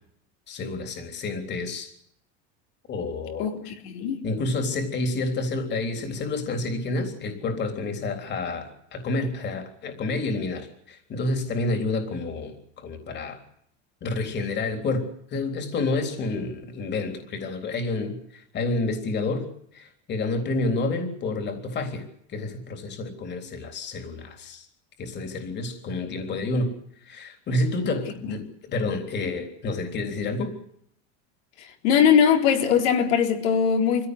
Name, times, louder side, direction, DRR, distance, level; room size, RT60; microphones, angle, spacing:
voice 1, 0.5-1.9 2.9-3.5 4.2-13.4 14.0-19.5 19.7-22.0 22.3-24.7 25.0-26.7 27.0-30.5, left 2 dB, 30° left, 3.7 m, -29 dB
voice 2, 3.4-4.2 28.3-28.4 31.8-34.1, left 7 dB, 70° left, 4.0 m, -21 dB
25.0 x 17.0 x 8.2 m
supercardioid pair, 150°, 35 cm